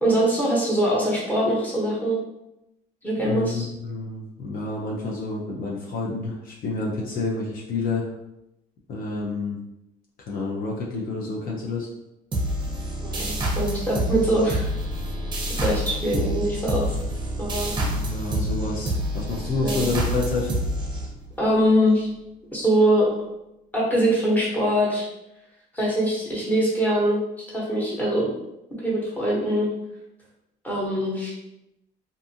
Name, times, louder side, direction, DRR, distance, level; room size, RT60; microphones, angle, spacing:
voice 1, 0.0-2.2 3.0-3.7 13.0-14.7 15.5-17.0 17.4-17.7 19.6-19.9 21.4-22.1 22.5-23.1 23.7-25.1 25.7-27.2 27.5-28.3 28.8-29.7 30.6-31.3, right 1 dB, 10° left, -6 dB, 1.0 m, -23 dB
voice 2, 3.2-8.1 8.9-9.6 10.3-11.9 17.7-20.6, left 3 dB, 55° left, -4 dB, 0.6 m, -29 dB
sound 1, 12.3-21.5, equal, 30° right, 0.6 m, -27 dB
2.6 x 2.4 x 2.7 m, 0.88 s
cardioid pair, 110°, 17 cm